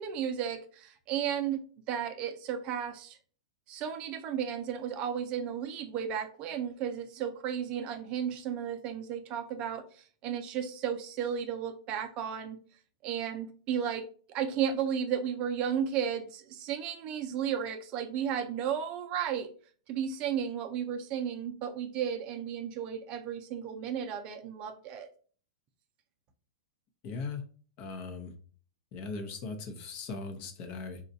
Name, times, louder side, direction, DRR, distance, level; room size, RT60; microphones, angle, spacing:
voice 1, 0.0-1.6 1.9-3.2 3.7-12.6 13.0-19.5 19.9-25.1, right 8 dB, 40° right, 7 dB, 0.5 m, -34 dB
voice 2, 27.0-27.4 27.8-28.3 28.9-31.0, left 4 dB, 45° left, 6 dB, 0.8 m, -39 dB
4.2 x 2.4 x 2.7 m, 0.43 s
hypercardioid pair, 125°, 3 cm